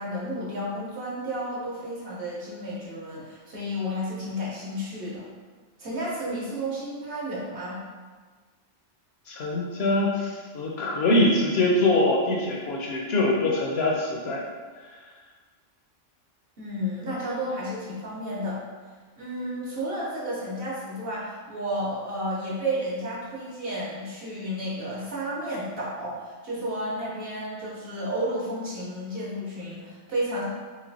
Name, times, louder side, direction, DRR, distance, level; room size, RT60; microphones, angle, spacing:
voice 1, 0.0-5.3 5.8-7.8 16.6-18.6 19.2-30.4, equal, 55° right, -6 dB, 1.0 m, -32 dB
voice 2, 9.3-14.4, left 2 dB, 65° left, -2 dB, 0.7 m, -23 dB
3.1 x 3.0 x 2.6 m, 1.4 s
omnidirectional pair, 1.2 m